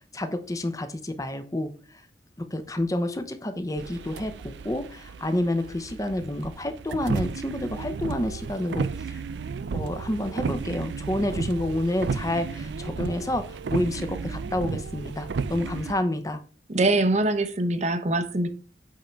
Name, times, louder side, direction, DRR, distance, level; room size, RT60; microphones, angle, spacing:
voice 1, 0.1-2.0 2.4-9.2 9.7-16.4, left 1 dB, 20° left, 0.8 m, -29 dB
sound 1, 3.8-15.9, right 5 dB, 80° right, 0.4 m, -33 dB
voice 2, 16.7-18.5, right 2 dB, 40° right, 0.8 m, -23 dB
8.5 x 3.8 x 4.5 m
head